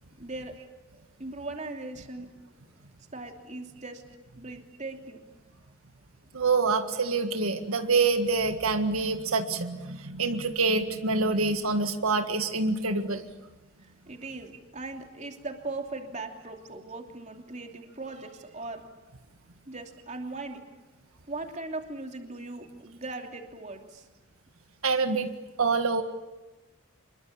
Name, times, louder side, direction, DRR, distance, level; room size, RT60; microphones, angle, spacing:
voice 1, 0.2-0.6 0.9-2.3 3.1-4.0 4.3-5.2 14.1-18.8 19.7-20.6 21.3-24.1, right 2 dB, 35° right, 4 dB, 3.0 m, -39 dB
voice 2, 6.3-13.3 24.8-25.3 25.6-26.0, right 3 dB, 85° right, 7 dB, 1.7 m, -26 dB
26.5 x 22.0 x 8.7 m, 1.1 s
head